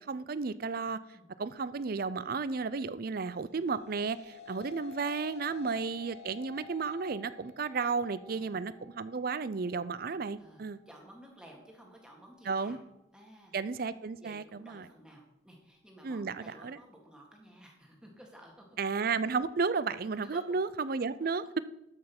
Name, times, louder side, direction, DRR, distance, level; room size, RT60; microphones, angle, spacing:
voice 1, 0.1-1.0 1.4-10.8 12.5-12.8 13.5-14.8 16.0-16.8 18.8-21.4, right 4 dB, 50° right, 15 dB, 0.5 m, -33 dB
sound 1, 3.4-12.6, left 5 dB, 35° left, 1.3 m, -52 dB
voice 2, 8.3-8.6 10.4-12.8 13.1-13.5 14.2-18.8 20.2-20.4 21.2-21.3, equal, 5° right, 0 dB, 1.8 m, -54 dB
12.5 x 5.5 x 5.9 m, 0.87 s
head